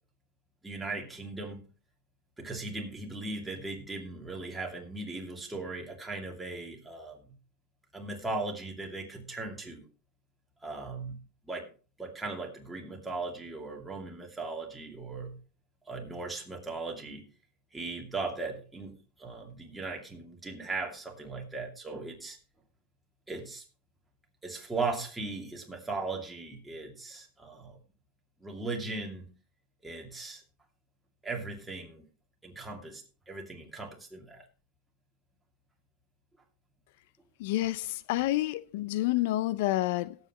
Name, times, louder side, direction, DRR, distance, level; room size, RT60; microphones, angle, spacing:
voice 1, 0.6-1.6 2.4-7.2 7.9-9.8 10.6-11.2 11.4-11.7 12.0-15.4 15.9-17.2 17.7-22.4 23.3-23.6 24.4-27.8 28.4-29.3 29.8-30.4 31.2-32.0 32.4-34.4, right 3 dB, 10° right, 2.5 m, -38 dB
voice 2, 37.4-40.2, left 16 dB, 70° left, 0.4 m, -29 dB
18.0 x 8.0 x 3.0 m
supercardioid pair, 140°, 0 cm